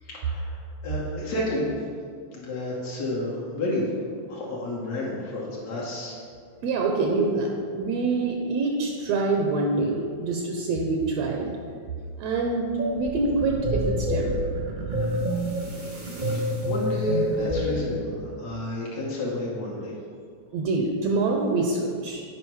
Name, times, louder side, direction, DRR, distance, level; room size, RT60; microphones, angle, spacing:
voice 1, 0.0-1.7 2.3-3.8 4.3-6.2 16.2-19.9, left 1 dB, 65° left, -5 dB, 2.3 m, -30 dB
voice 2, 6.6-11.5 12.2-14.4 20.5-22.2, right 3 dB, 75° right, 1 dB, 1.8 m, -25 dB
sound 1, 12.8-17.9, equal, 30° right, 0.8 m, -28 dB
8.6 x 5.1 x 4.7 m, 2.2 s
omnidirectional pair, 3.3 m